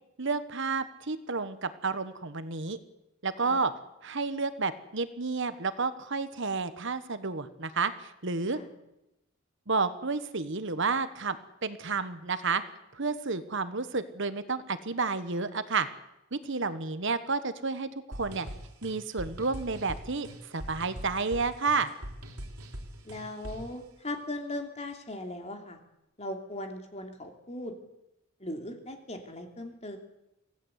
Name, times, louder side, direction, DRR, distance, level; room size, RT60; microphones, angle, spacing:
voice 1, 0.2-2.8 3.2-3.7 4.0-8.6 9.7-11.4 11.6-12.6 12.9-15.9 16.3-18.5 18.8-21.9, right 4 dB, 55° right, 12 dB, 1.3 m, -31 dB
sound 1, 18.1-23.8, equal, 90° right, 3.7 m, -42 dB
voice 2, 23.0-25.8 26.2-27.7 28.4-30.0, left 1 dB, 30° left, 4 dB, 2.9 m, -39 dB
25.0 x 16.5 x 8.2 m, 0.89 s
head